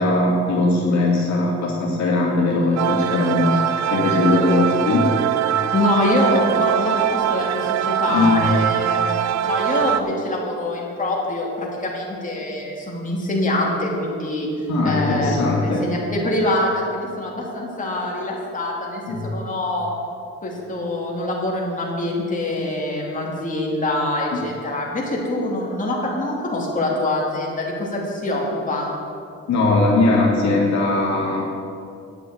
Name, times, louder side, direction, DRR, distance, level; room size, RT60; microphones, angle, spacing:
voice 1, 0.0-5.1 8.1-8.6 14.7-15.8 19.1-19.2 24.3-24.4 29.5-31.4, left 2 dB, 65° left, -3 dB, 2.4 m, -19 dB
sound 1, 2.8-10.0, right 11 dB, 60° right, 0.5 m, -22 dB
voice 2, 5.7-14.5 14.8-15.3 15.6-19.9 20.4-28.9, left 1 dB, 25° left, -3 dB, 2.9 m, -24 dB
9.4 x 7.6 x 7.9 m, 2.4 s
cardioid pair, 90°, 30 cm